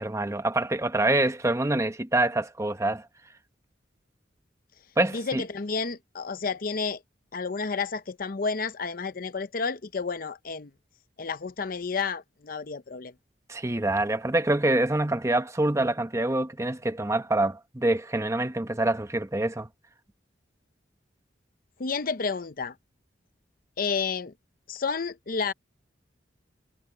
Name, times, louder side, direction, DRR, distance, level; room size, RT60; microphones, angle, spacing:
voice 1, 0.0-3.0 5.0-5.4 13.5-19.7, right 2 dB, 15° right, 1.0 m, -26 dB
voice 2, 5.1-7.0 7.3-10.7 11.2-13.1 21.8-22.7 23.8-24.3 24.7-25.5, left 5 dB, 50° left, 0.7 m, -31 dB
head